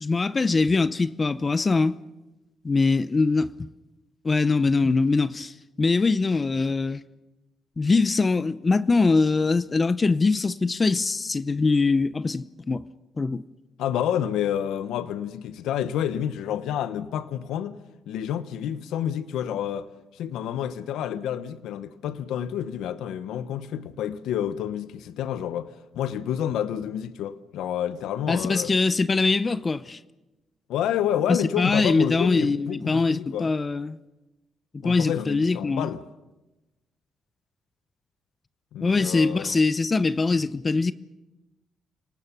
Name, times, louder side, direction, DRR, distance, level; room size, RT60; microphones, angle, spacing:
voice 1, 0.0-2.0 2.6-3.5 4.2-7.0 7.8-12.9 13.2-13.4 28.3-30.0 31.3-34.0 34.8-35.9 38.8-40.9, left 3 dB, 30° left, 0.7 m, -22 dB
voice 2, 13.8-17.8 18.1-28.7 30.7-33.5 34.8-36.0 38.7-39.6, left 10 dB, 85° left, 1.0 m, -29 dB
29.0 x 18.5 x 6.1 m
cardioid pair, 90°, 0 cm